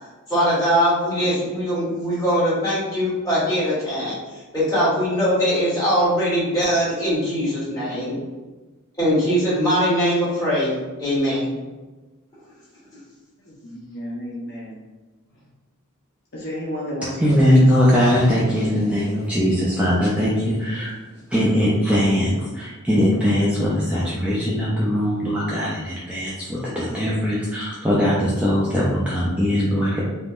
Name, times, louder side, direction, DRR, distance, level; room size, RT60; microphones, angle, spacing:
voice 1, 0.3-4.1 4.5-8.2 9.0-10.7 11.0-11.5, equal, 15° left, -10 dB, 1.4 m, -21 dB
voice 2, 13.4-14.8 16.3-17.6, equal, 50° left, -5 dB, 0.5 m, -32 dB
voice 3, 17.2-20.9 21.3-30.0, equal, 5° right, -8 dB, 0.4 m, -20 dB
3.4 x 2.2 x 2.4 m, 1.2 s
head